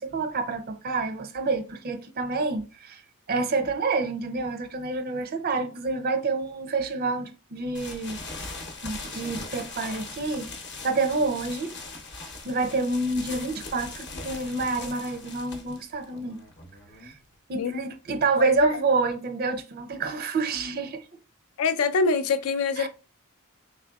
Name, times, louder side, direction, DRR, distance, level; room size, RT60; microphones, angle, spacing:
voice 1, 0.0-3.0 3.3-8.2 8.8-10.5 10.8-11.8 12.4-16.4 17.0-17.1 17.5-21.0 22.8-22.9, right 3 dB, 45° right, 0.4 m, -28 dB
sound 1, 7.7-17.3, left 3 dB, 55° left, 0.8 m, -40 dB
voice 2, 21.6-22.9, left 4 dB, 75° left, 0.4 m, -24 dB
3.7 x 3.3 x 2.3 m
head